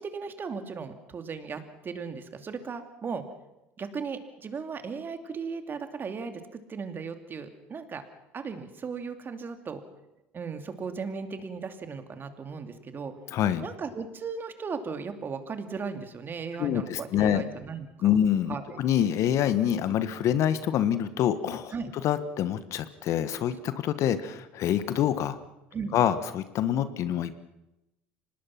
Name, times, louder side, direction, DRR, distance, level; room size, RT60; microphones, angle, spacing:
voice 1, 0.0-3.2 3.8-8.0 8.3-9.8 10.3-13.1 13.6-18.1 18.5-18.8 21.7-21.9 25.7-25.9, right 5 dB, 35° right, 8 dB, 2.6 m, -36 dB
voice 2, 13.3-13.7 16.6-17.4 18.0-21.7 22.0-25.4 25.9-27.3, left 10 dB, 55° left, 13 dB, 1.4 m, -26 dB
25.0 x 19.5 x 5.9 m, 0.93 s
hypercardioid pair, 70°, 6 cm